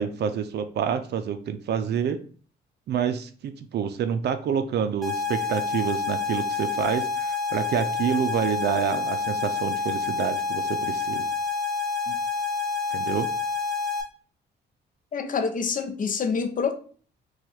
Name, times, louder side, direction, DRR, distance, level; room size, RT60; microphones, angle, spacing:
voice 1, 0.0-2.2 2.9-11.3 12.9-13.3, right 8 dB, 55° right, 0.4 m, -28 dB
sound 1, 5.0-14.0, left 5 dB, ahead, 0.9 m, -28 dB
voice 2, 15.1-16.7, left 5 dB, 45° left, 0.6 m, -27 dB
3.0 x 2.3 x 4.2 m
cardioid pair, 90°, 20 cm